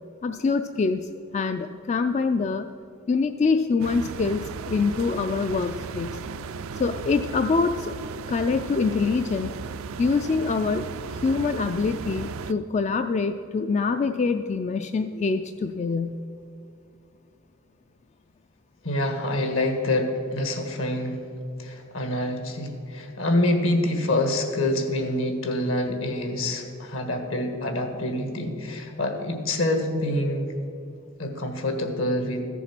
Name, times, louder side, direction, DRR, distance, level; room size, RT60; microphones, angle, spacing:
voice 1, 0.2-2.7 3.1-6.2 6.7-8.0 8.3-9.6 10.0-16.2, left 4 dB, 35° left, 8 dB, 0.3 m, -25 dB
sound 1, 3.8-12.5, right 5 dB, 80° right, 0.5 m, -35 dB
voice 2, 18.8-21.2 21.6-30.5 31.2-32.5, left 1 dB, 70° left, 5 dB, 1.5 m, -26 dB
14.0 x 7.0 x 5.9 m, 2.7 s
head